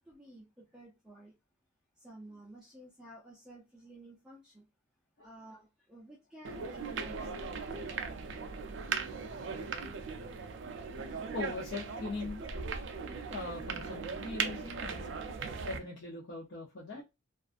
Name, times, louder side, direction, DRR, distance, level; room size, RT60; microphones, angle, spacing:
voice 1, 0.0-1.3 2.0-4.7 5.2-7.6, right 1 dB, 5° right, 0.5 m, -53 dB
sound 1, 6.4-15.8, right 5 dB, 55° right, 0.3 m, -38 dB
voice 2, 9.6-10.0 11.3-12.5 13.3-15.2 15.6-17.0, left 3 dB, 55° left, 0.6 m, -41 dB
2.4 x 2.3 x 2.4 m
head